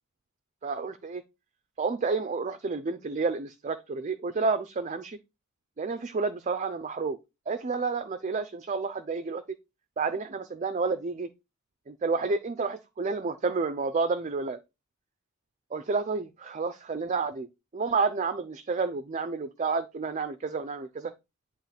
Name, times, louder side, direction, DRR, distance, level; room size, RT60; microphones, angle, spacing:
voice 1, 0.6-1.2 1.8-5.2 5.8-7.2 7.5-9.4 10.0-11.3 11.9-14.6 15.7-17.5 17.7-21.1, right 4 dB, 35° right, 0.4 m, -30 dB
8.6 x 3.0 x 5.7 m
head